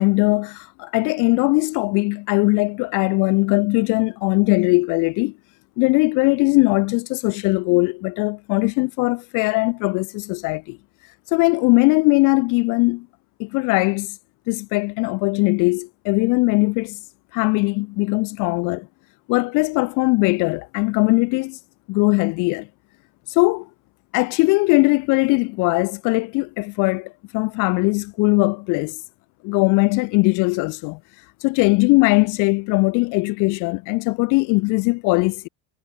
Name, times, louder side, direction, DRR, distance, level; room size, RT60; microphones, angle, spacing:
voice 1, 0.0-5.3 5.8-10.8 11.3-13.1 13.4-14.2 14.5-17.0 17.3-18.9 19.3-21.6 21.9-22.7 23.3-23.7 24.1-29.0 29.4-31.0 31.4-35.5, left 27 dB, 55° left, 0.8 m, -20 dB
supercardioid pair, 135°, 37 cm